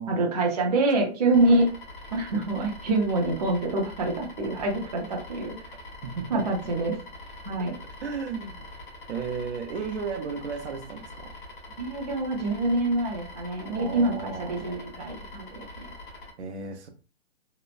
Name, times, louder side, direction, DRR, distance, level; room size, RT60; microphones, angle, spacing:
voice 1, 0.1-1.7 2.1-5.7 6.3-7.0 7.4-7.7 11.8-15.9, right 2 dB, 35° right, 0.5 m, -26 dB
sound 1, 1.3-16.3, left 2 dB, 50° left, 0.8 m, -44 dB
voice 2, 6.0-6.4 8.0-8.7 9.1-11.3 13.8-14.6 16.4-16.9, right 5 dB, 75° right, 0.7 m, -34 dB
2.9 x 2.0 x 2.4 m
hypercardioid pair, 175°, 34 cm